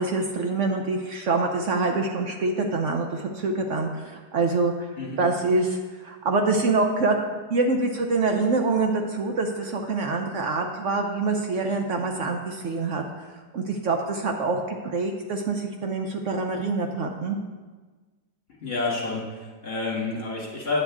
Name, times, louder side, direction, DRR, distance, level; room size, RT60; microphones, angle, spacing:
voice 1, 0.0-4.9 5.2-13.0 13.5-17.4, right 3 dB, 60° right, 3 dB, 0.9 m, -25 dB
voice 2, 18.6-20.8, left 3 dB, 35° left, -5 dB, 1.9 m, -29 dB
9.2 x 7.7 x 3.6 m, 1.3 s
omnidirectional pair, 1.8 m